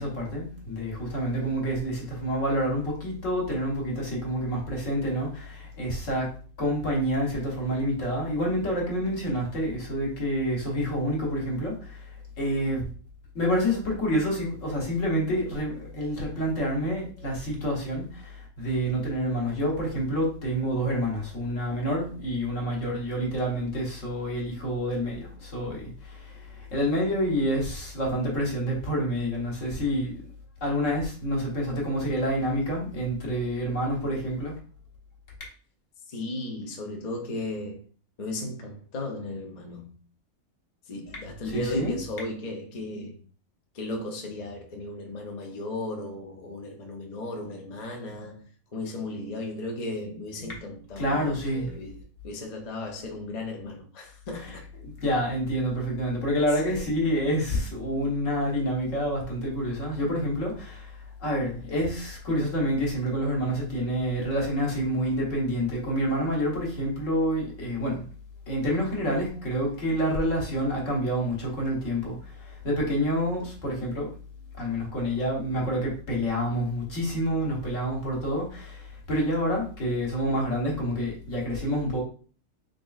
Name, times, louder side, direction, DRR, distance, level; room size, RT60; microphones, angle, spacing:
voice 1, 0.0-12.1 12.4-12.9 13.3-30.2 30.6-34.6 41.5-42.0 51.0-51.7 54.4-54.6 54.8-68.1 68.5-74.1 74.6-82.0, equal, 65° left, 1.5 m, -28 dB
voice 2, 36.1-37.8 38.2-39.9 40.9-43.2 43.7-48.4 48.7-52.0 52.2-54.6 56.7-56.9, left 2 dB, 40° left, 0.6 m, -35 dB
3.7 x 3.6 x 2.4 m
omnidirectional pair, 1.5 m